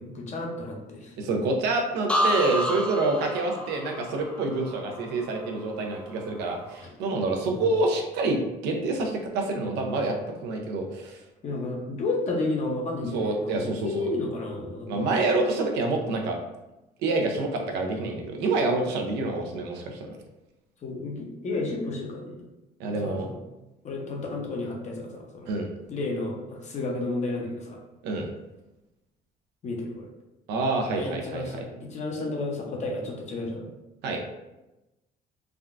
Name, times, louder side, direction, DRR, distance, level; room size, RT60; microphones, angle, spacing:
voice 1, 0.0-1.1 6.8-6.9 7.5-7.7 11.4-15.1 20.8-22.4 23.0-23.3 23.8-25.5 25.9-27.8 29.6-30.1 30.9-33.7, left 2 dB, 45° left, 0 dB, 0.7 m, -32 dB
voice 2, 1.2-10.2 10.4-11.2 13.1-14.1 14.9-16.4 17.0-20.1 22.8-23.3 25.5-25.7 28.0-28.3 30.5-31.6 34.0-34.2, right 2 dB, 85° right, 2 dB, 0.6 m, -27 dB
sound 1, 2.1-5.9 6.3-6.8, left 1 dB, 5° left, 0.3 m, -30 dB
3.5 x 2.2 x 2.4 m, 1.0 s
cardioid pair, 110°, 17 cm